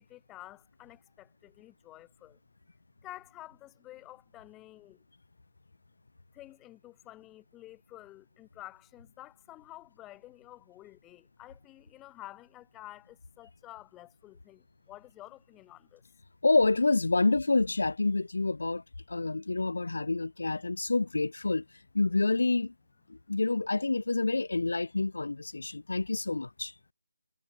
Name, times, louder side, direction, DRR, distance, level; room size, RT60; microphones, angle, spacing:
voice 1, 0.0-2.4 3.0-5.0 6.3-16.0, left 16 dB, 5° left, 0.5 m, -50 dB
voice 2, 16.4-18.8 19.1-21.6 21.9-22.7 23.1-26.7, left 3 dB, 70° left, 0.5 m, -28 dB
figure-of-eight pair, 175°, 0 cm